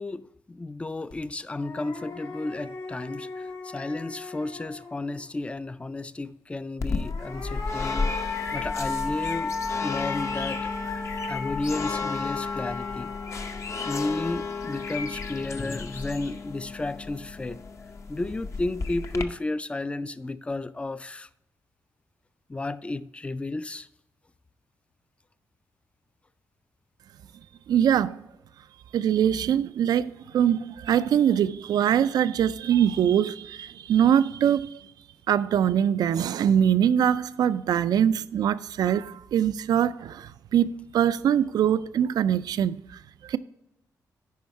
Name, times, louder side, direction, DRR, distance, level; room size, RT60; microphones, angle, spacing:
voice 1, 0.0-9.5 9.8-10.7 11.3-13.1 13.8-17.6 18.1-21.3 22.5-23.9, left 2 dB, 15° left, 0.4 m, -33 dB
sound 1, 1.1-1.2 1.6-5.2 6.9-14.2, left 4 dB, 85° left, 1.6 m, -36 dB
sound 2, 6.8-19.2, left 4 dB, 45° left, 0.7 m, -33 dB
voice 2, 27.7-28.2 28.9-34.8 35.3-42.8 43.2-43.4, right 9 dB, 75° right, 0.4 m, -23 dB
9.3 x 5.3 x 4.5 m
cardioid pair, 95°, 7 cm